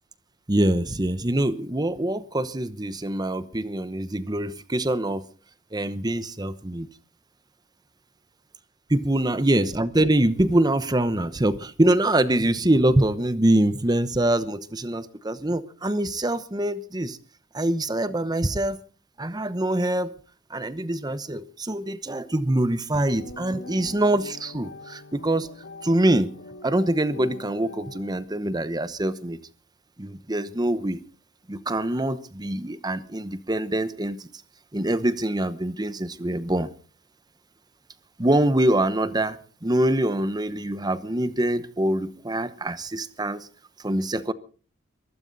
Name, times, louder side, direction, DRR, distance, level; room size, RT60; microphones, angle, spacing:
voice 1, 0.5-5.2 5.7-6.9 8.9-17.2 17.5-18.8 19.2-20.1 20.5-25.5 25.8-26.3 26.6-29.4 30.0-31.0 31.5-34.2 34.7-36.7 38.2-43.5 43.8-44.3, right 1 dB, 20° right, 14 dB, 1.0 m, -24 dB
sound 1, 23.2-28.1, left 2 dB, 60° left, 1.5 m, -43 dB
22.5 x 15.5 x 4.1 m, 0.40 s
head